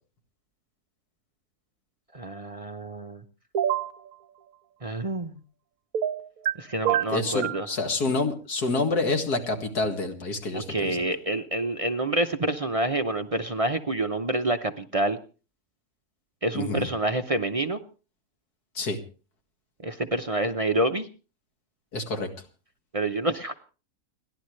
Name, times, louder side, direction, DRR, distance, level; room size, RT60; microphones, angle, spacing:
voice 1, 2.1-3.2 4.8-5.4 6.5-7.7 10.5-15.2 16.4-17.8 19.8-21.1 22.9-23.5, right 2 dB, 35° right, 6 dB, 0.6 m, -27 dB
sound 1, 3.5-3.9 5.9-6.5 6.9-7.6, right 10 dB, 65° right, 1.3 m, -25 dB
voice 2, 7.1-11.0 16.5-16.9 18.8-19.0 21.9-22.3, left 3 dB, 85° left, 5 dB, 2.5 m, -27 dB
30.0 x 11.5 x 3.2 m, 0.35 s
omnidirectional pair, 1.6 m